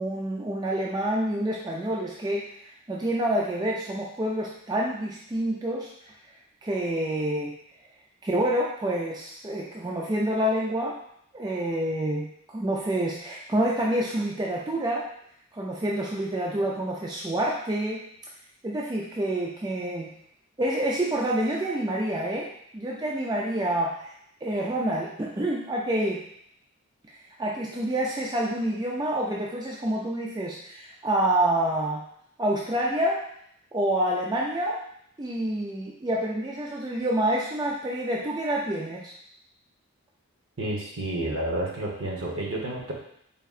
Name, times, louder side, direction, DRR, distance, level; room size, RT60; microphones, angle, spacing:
voice 1, 0.0-5.9 6.6-7.5 8.2-11.0 11.3-15.1 15.5-18.0 18.6-20.2 20.6-24.1 24.4-26.2 27.4-32.0 32.4-33.2 33.7-34.8 35.2-39.1, right 1 dB, 20° right, -3 dB, 0.3 m, -27 dB
voice 2, 40.6-42.9, right 1 dB, 60° right, -2 dB, 1.0 m, -30 dB
4.2 x 3.7 x 2.4 m, 0.70 s
head